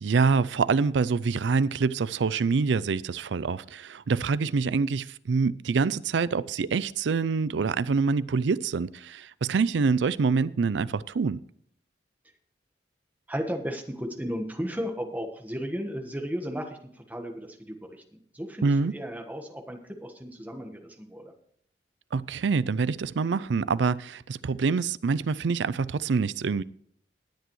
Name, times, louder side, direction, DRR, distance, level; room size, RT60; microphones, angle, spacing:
voice 1, 0.0-11.4 18.6-18.9 22.1-26.6, right 4 dB, 85° right, 0.4 m, -26 dB
voice 2, 13.3-21.3, equal, 10° right, 1.3 m, -35 dB
19.0 x 8.2 x 3.1 m
head